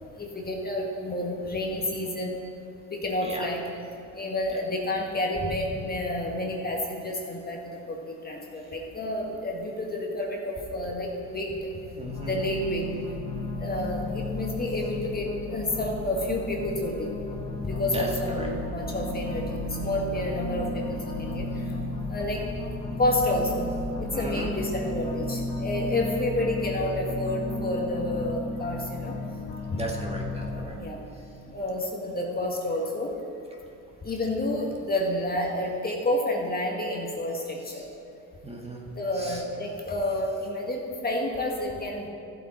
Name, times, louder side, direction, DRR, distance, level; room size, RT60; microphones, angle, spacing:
voice 1, 0.2-2.4 2.9-3.6 4.1-7.6 7.9-11.7 12.3-12.9 13.6-17.1 17.6-21.4 22.1-22.5 23.0-23.6 24.0-29.1 30.5-31.0 31.5-33.2 34.0-37.9 39.0-42.1, left 1 dB, 25° left, 0 dB, 1.7 m, -29 dB
voice 2, 11.9-12.3 17.9-18.4 24.1-24.5 29.7-30.7 38.4-38.8 39.2-39.4, right 2 dB, 15° right, -2 dB, 1.7 m, -36 dB
sound 1, 12.0-30.7, left 2 dB, 75° left, 2.4 m, -33 dB
14.5 x 7.9 x 4.4 m, 2.6 s
supercardioid pair, 95°, 37 cm